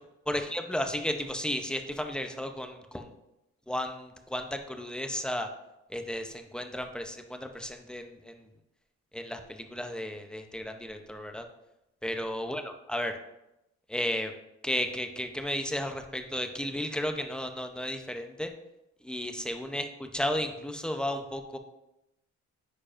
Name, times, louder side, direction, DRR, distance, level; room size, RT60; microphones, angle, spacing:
voice 1, 0.3-3.1 3.7-5.5 5.9-8.5 9.1-11.4 12.0-13.2 13.9-14.3 14.6-18.5 19.0-21.6, left 1 dB, 5° left, 6 dB, 0.7 m, -33 dB
8.6 x 4.9 x 2.5 m, 0.89 s
cardioid pair, 90°, 30 cm